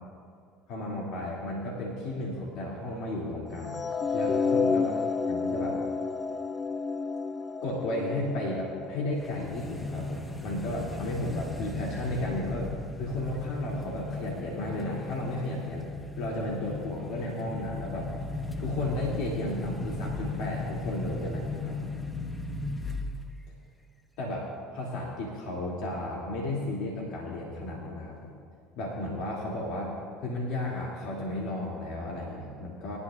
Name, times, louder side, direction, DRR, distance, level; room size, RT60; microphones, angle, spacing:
voice 1, 0.7-3.8 4.1-4.9 5.3-5.8 7.6-12.7 13.0-15.8 16.2-18.1 18.6-21.9 24.2-28.3 28.8-29.9 30.2-33.0, left 1 dB, 65° left, -4 dB, 2.6 m, -34 dB
sound 1, 3.6-9.9, left 5 dB, 35° left, 0.4 m, -30 dB
sound 2, 9.2-23.4, left 2 dB, 15° left, 1.2 m, -36 dB
21.5 x 12.5 x 2.5 m, 2.2 s
hypercardioid pair, 70°, 0 cm